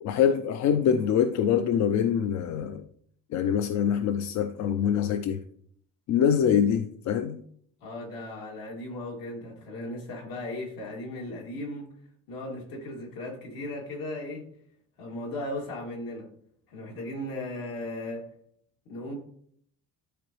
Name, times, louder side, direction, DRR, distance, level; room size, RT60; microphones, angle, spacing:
voice 1, 0.0-2.9 3.3-5.4 6.1-7.4, left 8 dB, 55° left, 9 dB, 0.5 m, -24 dB
voice 2, 7.8-11.9 12.3-14.5 15.0-16.3 16.7-18.3 18.9-19.1, left 1 dB, 70° left, -1 dB, 2.4 m, -36 dB
11.5 x 3.9 x 3.1 m, 0.63 s
cardioid pair, 150°, 35 cm